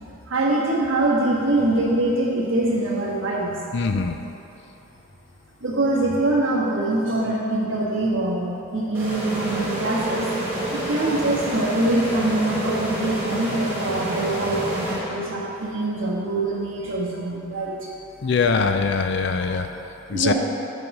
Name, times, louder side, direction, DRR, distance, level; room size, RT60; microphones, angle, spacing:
voice 1, 0.3-3.5 5.6-10.3 10.7-17.9 20.1-20.3, right 2 dB, 65° right, -5 dB, 1.4 m, -24 dB
voice 2, 3.7-4.2 18.2-19.7 20.1-20.3, left 5 dB, 55° left, 6 dB, 0.4 m, -22 dB
sound 1, 8.9-15.6, equal, 10° right, 1.3 m, -28 dB
8.8 x 3.9 x 6.1 m, 2.8 s
head